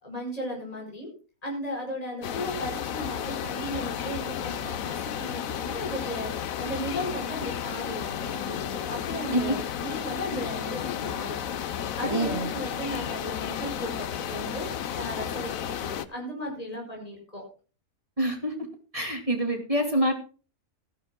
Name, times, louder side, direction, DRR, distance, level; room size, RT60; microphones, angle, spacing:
voice 1, 0.0-1.1 1.4-11.4 11.9-14.7 14.9-17.4, equal, 25° left, 0 dB, 5.2 m, -36 dB
sound 1, 2.2-16.1, left 9 dB, 70° left, 1.2 m, -33 dB
voice 2, 12.0-12.5 18.2-18.5 18.9-20.1, right 1 dB, 25° right, 3 dB, 2.5 m, -26 dB
18.5 x 13.5 x 2.2 m, 0.35 s
omnidirectional pair, 1.5 m